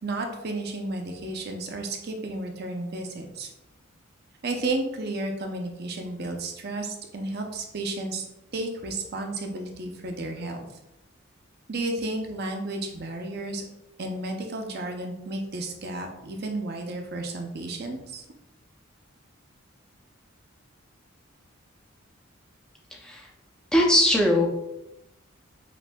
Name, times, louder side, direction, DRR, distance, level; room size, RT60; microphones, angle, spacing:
voice 1, 0.0-3.5 4.4-8.2 8.5-10.7 11.7-13.6 14.0-18.2, right 2 dB, 50° right, 3 dB, 0.6 m, -32 dB
voice 2, 23.7-24.5, left 1 dB, 5° left, -1 dB, 0.5 m, -20 dB
5.9 x 2.6 x 2.2 m, 0.91 s
head